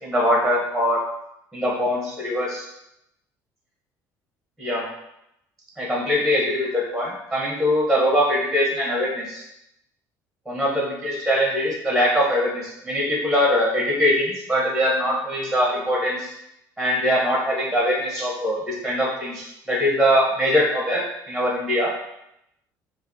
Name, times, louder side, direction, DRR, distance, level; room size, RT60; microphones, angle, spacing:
voice 1, 0.0-1.0 1.5-2.7 4.6-4.8 5.8-9.4 10.5-16.3 16.8-21.0 21.3-21.9, equal, ahead, -3 dB, 1.1 m, -22 dB
4.8 x 2.5 x 2.7 m, 0.81 s
cardioid pair, 120°, 7 cm